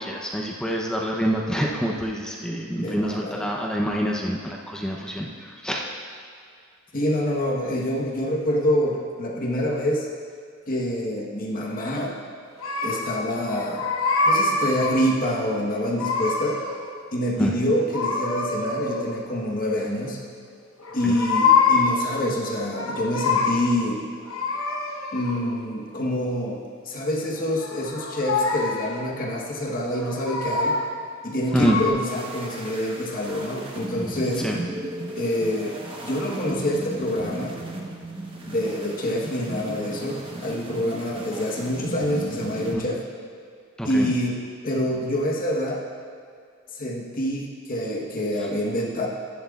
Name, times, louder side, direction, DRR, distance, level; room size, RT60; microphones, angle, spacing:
voice 1, 0.0-5.8 17.4-17.5 21.0-21.1 31.5-31.8 34.4-34.6 42.7-42.8 43.8-44.1, equal, 5° left, -2 dB, 0.7 m, -26 dB
voice 2, 2.8-3.5 6.9-10.1 10.7-12.2 12.8-13.9 14.3-16.6 17.1-20.2 20.9-24.0 25.1-30.8 31.2-34.5 35.2-35.8 36.0-37.6 38.5-43.0 43.8-44.4 44.6-45.8 46.7-49.1, equal, 45° left, -2 dB, 1.2 m, -26 dB
sound 1, 12.6-13.2 13.5-15.1 15.7-16.9 17.9-19.3 20.8-22.1 22.5-23.8 24.3-25.6 27.4-29.0 29.8-31.0 31.5-31.9, left 4 dB, 85° left, 1.0 m, -25 dB
sound 2, 32.1-42.7, right 1 dB, 25° right, 1.1 m, -35 dB
14.5 x 10.5 x 2.4 m, 2.2 s
head